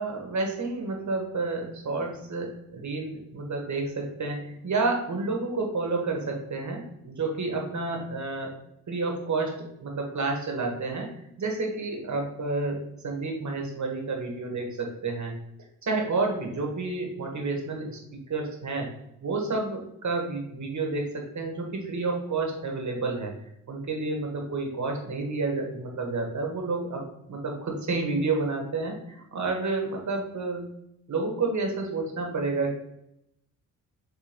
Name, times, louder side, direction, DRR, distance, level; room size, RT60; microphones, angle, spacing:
voice 1, 0.0-8.6 8.9-15.3 15.8-18.0 18.3-18.9 19.2-23.3 23.7-30.7 31.1-32.8, right 3 dB, 40° right, 1 dB, 1.6 m, -30 dB
5.1 x 3.3 x 3.0 m, 0.79 s
hypercardioid pair, 45°, 42 cm